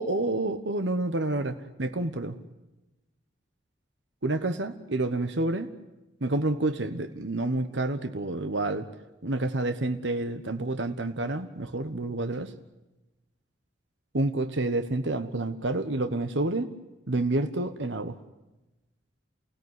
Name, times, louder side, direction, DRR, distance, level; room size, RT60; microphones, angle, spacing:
voice 1, 0.0-2.4 4.2-5.7 6.2-8.9 9.2-12.5 14.1-16.7 17.1-18.2, right 2 dB, 80° right, 8 dB, 1.3 m, -29 dB
29.5 x 16.5 x 9.8 m, 1.0 s
head